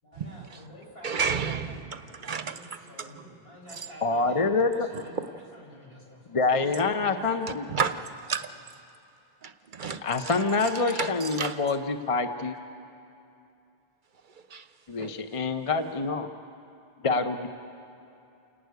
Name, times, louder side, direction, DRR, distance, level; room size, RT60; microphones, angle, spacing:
voice 1, 0.0-8.0, equal, 75° left, -4 dB, 6.1 m, -49 dB
voice 2, 1.0-1.8 2.1-2.8 4.9-5.0 7.7-8.5 9.4-10.0 10.6-10.7 11.0-11.6 14.5-14.7 15.0-15.1, right 6 dB, 55° right, 10 dB, 0.7 m, -31 dB
voice 3, 4.0-4.9 6.3-7.7 10.0-12.6 14.9-16.3 17.0-17.5, left 3 dB, 35° left, 7 dB, 0.7 m, -26 dB
28.5 x 11.5 x 9.4 m, 2.7 s
omnidirectional pair, 1.0 m